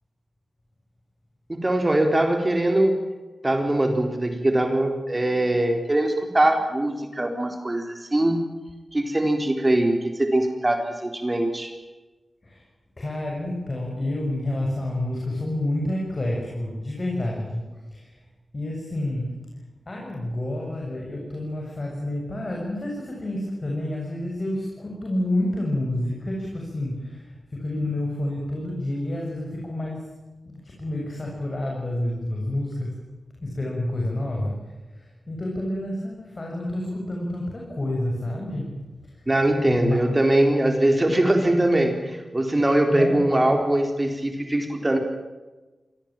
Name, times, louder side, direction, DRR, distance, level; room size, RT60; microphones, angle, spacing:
voice 1, 1.5-2.9 3.4-8.4 8.9-11.7 39.3-45.0, right 1 dB, 25° right, 5 dB, 3.9 m, -22 dB
voice 2, 13.0-18.2 18.5-19.5 19.9-30.0 30.5-33.0 33.4-34.6 34.9-39.3 39.7-40.0 42.9-43.6, left 1 dB, 40° left, -2 dB, 7.3 m, -29 dB
25.0 x 18.5 x 9.0 m, 1.2 s
cardioid pair, 60°, 0 cm